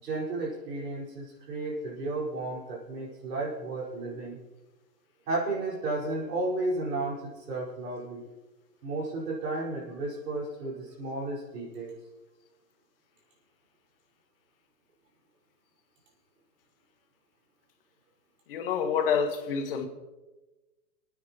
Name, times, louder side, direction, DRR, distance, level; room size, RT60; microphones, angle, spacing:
voice 1, 0.0-4.4 5.3-8.3 8.8-11.9, right 2 dB, 70° right, -5 dB, 5.1 m, -33 dB
voice 2, 18.5-19.9, left 6 dB, 35° left, 5 dB, 1.4 m, -27 dB
26.0 x 9.3 x 3.0 m, 1.2 s
hypercardioid pair, 175°, 50 cm